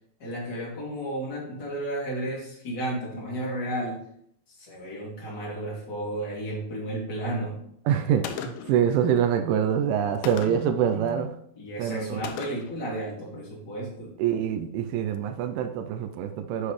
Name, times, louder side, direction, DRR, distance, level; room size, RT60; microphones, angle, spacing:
voice 1, 0.2-4.0 4.5-7.6 11.6-14.1, right 1 dB, 30° left, -4 dB, 2.3 m, -33 dB
voice 2, 7.9-11.3 11.8-12.2 14.2-16.7, right 9 dB, 85° right, 7 dB, 3.0 m, -25 dB
Gunshot gunfire, 8.2-8.8 10.2-10.8 12.2-12.8, left 7 dB, 80° left, 2.6 m, -37 dB
8.5 x 7.8 x 3.1 m, 0.68 s
omnidirectional pair, 5.4 m